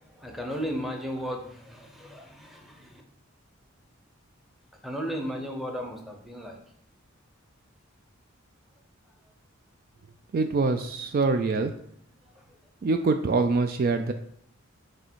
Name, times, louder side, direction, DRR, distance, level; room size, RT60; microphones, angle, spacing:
voice 1, 0.0-3.0 4.8-6.6 12.3-12.6, equal, ahead, 2 dB, 0.8 m, -35 dB
voice 2, 10.3-11.7 12.8-14.1, right 3 dB, 45° right, 7 dB, 0.3 m, -24 dB
6.6 x 3.3 x 4.5 m, 0.67 s
head